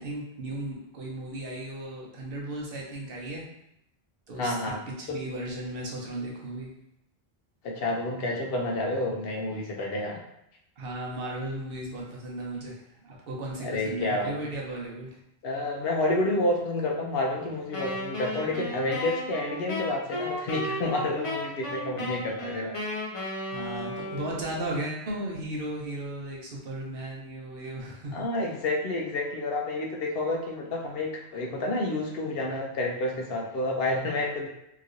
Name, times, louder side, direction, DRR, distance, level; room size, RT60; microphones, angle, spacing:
voice 1, 0.0-3.4 4.3-6.7 10.8-15.2 23.5-28.5, right 1 dB, 65° right, -2 dB, 0.9 m, -36 dB
voice 2, 4.4-4.8 5.1-5.2 7.6-10.2 13.6-14.3 15.4-22.7 24.1-24.3 28.1-34.5, left 2 dB, 70° left, 0 dB, 0.8 m, -29 dB
Wind instrument woodwind instrument, 17.7-24.6, left 1 dB, 40° left, 0.6 m, -34 dB
2.9 x 2.8 x 2.5 m, 0.79 s
omnidirectional pair, 1.0 m